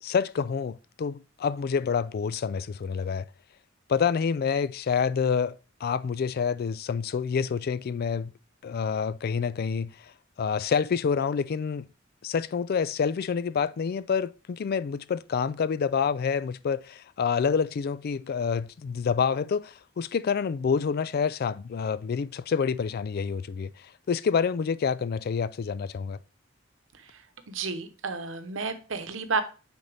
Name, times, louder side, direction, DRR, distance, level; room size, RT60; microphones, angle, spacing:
voice 1, 0.0-3.3 3.9-5.5 5.8-8.3 8.6-9.9 10.4-11.9 12.2-23.7 24.1-26.2, left 6 dB, 50° left, 0.3 m, -27 dB
voice 2, 26.9-29.4, right 4 dB, 70° right, 0.9 m, -32 dB
9.8 x 4.1 x 3.4 m
head